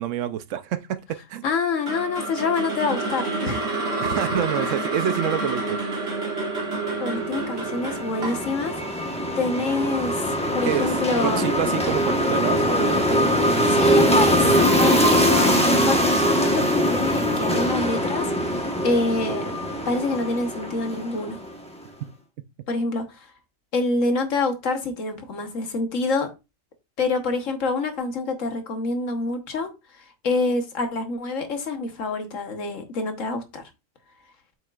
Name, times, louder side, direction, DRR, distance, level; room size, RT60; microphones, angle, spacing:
voice 1, 0.0-1.4 4.0-6.3 10.6-13.0 13.5-14.0, right 10 dB, 70° right, 0.9 m, -28 dB
voice 2, 1.4-3.6 7.0-9.0 9.3-10.2 10.5-11.5 13.6-19.5 19.9-21.4 22.7-23.3 23.7-26.3 27.0-29.7 30.2-33.6, left 3 dB, 70° left, 1.5 m, -26 dB
sound 1, 1.9-10.0, right 3 dB, 50° right, 2.1 m, -29 dB
sound 2, 7.2-21.6, equal, 5° left, 1.0 m, -22 dB
7.8 x 5.5 x 2.4 m
omnidirectional pair, 1.4 m